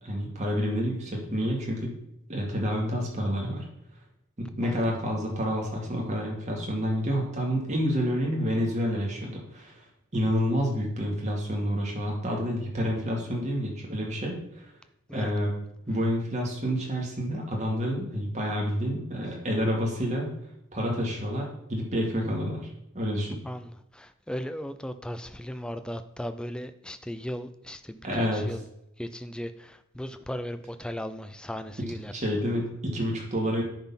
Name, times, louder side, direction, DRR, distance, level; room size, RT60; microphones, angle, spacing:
voice 1, 0.0-2.0 2.3-3.7 4.4-9.8 10.1-14.7 15.1-15.6 15.9-20.3 20.7-22.7 22.9-23.4 28.0-28.6 31.8-33.6, equal, 35° right, -1 dB, 2.1 m, -29 dB
voice 2, 23.9-28.6 29.0-32.1, equal, 5° left, 10 dB, 0.4 m, -36 dB
10.5 x 4.2 x 5.7 m, 0.81 s
head